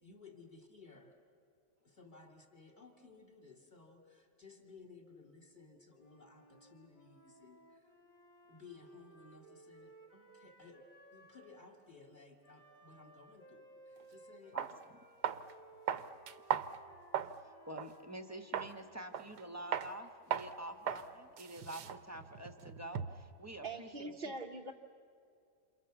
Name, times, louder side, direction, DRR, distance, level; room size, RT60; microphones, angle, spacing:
voice 1, 0.0-1.2 1.8-7.9 8.5-14.8 15.9-16.1, left 4 dB, 25° left, 1 dB, 3.0 m, -58 dB
Wind instrument woodwind instrument, 6.0-11.7 12.4-18.9, right 1 dB, 85° left, 3.7 m, -61 dB
sound 1, 14.0-14.1 14.6-14.7 15.2-15.5 15.9-17.4 17.8-17.9 18.5-18.8 19.1-19.4 19.7-19.9 20.3-20.5 20.9-21.1 21.4-23.3, right 8 dB, 75° right, 1.4 m, -37 dB
voice 2, 14.5-15.0 17.4-24.3, right 1 dB, 10° right, 5 dB, 1.1 m, -48 dB
voice 3, 23.6-24.7, right 3 dB, 40° right, -1 dB, 1.0 m, -42 dB
28.0 x 28.0 x 7.1 m, 2.4 s
omnidirectional pair, 1.8 m